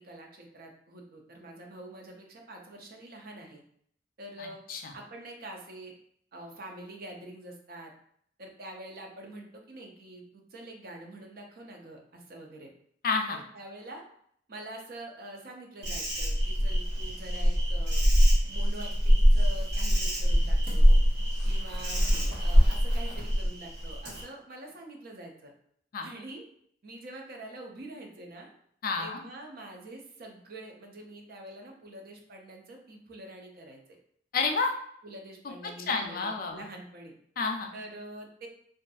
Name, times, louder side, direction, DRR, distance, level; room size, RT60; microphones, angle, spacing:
voice 1, 0.0-3.6 4.2-4.6 4.9-5.9 6.3-7.9 8.4-12.7 13.3-14.0 14.5-18.0 18.5-20.9 21.4-25.5 26.0-26.4 26.8-28.5 29.0-34.0 35.0-37.1 37.7-38.5, right 1 dB, 55° right, 2 dB, 0.5 m, -45 dB
voice 2, 4.4-4.9 13.0-13.4 25.9-26.1 28.8-29.2 34.3-34.7 35.9-36.7 37.4-37.7, left 4 dB, 55° left, 4 dB, 0.4 m, -30 dB
Insect, 15.8-24.2, equal, 75° right, 1.0 m, -24 dB
2.6 x 2.4 x 2.3 m, 0.65 s
head